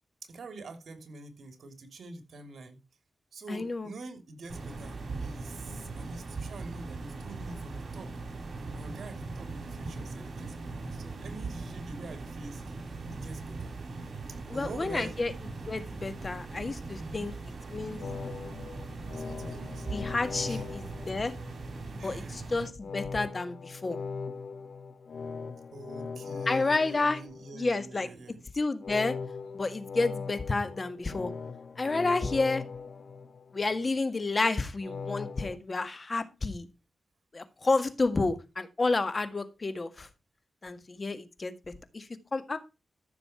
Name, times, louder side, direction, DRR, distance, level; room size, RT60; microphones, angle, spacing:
voice 1, 0.2-2.8 3.3-8.1 8.7-12.6 13.1-13.7 14.5-15.1 17.0-17.3 19.1-19.9 20.5-20.6 22.0-22.5 25.7-28.4, right 3 dB, 75° right, 3.1 m, -46 dB
voice 2, 3.5-3.9 14.5-15.3 15.7-17.3 17.7-18.0 19.9-21.3 21.9-24.0 26.5-27.2 27.5-28.1 28.5-29.2 29.5-31.3 31.8-32.6 33.5-36.7 37.3-40.1 40.6-41.5 41.9-42.6, left 3 dB, 40° left, 1.8 m, -30 dB
sound 1, 4.5-22.7, right 3 dB, 55° right, 5.1 m, -40 dB
sound 2, 18.0-21.9 22.8-27.9 28.8-33.9 34.8-35.6, left 5 dB, 70° left, 1.6 m, -40 dB
14.5 x 6.9 x 4.4 m
cardioid pair, 75°, 0 cm